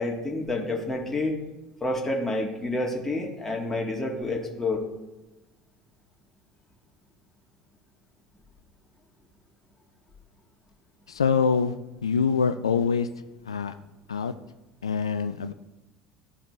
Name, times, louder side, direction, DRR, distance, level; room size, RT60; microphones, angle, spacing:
voice 1, 0.0-1.4 1.8-4.8, left 2 dB, 15° left, -1 dB, 1.8 m, -29 dB
voice 2, 11.1-11.7 12.0-13.1 13.4-13.7 14.1-14.3 14.8-15.5, left 5 dB, 85° left, 10 dB, 0.3 m, -24 dB
13.5 x 5.0 x 3.1 m, 1.0 s
hypercardioid pair, 70°, 3 cm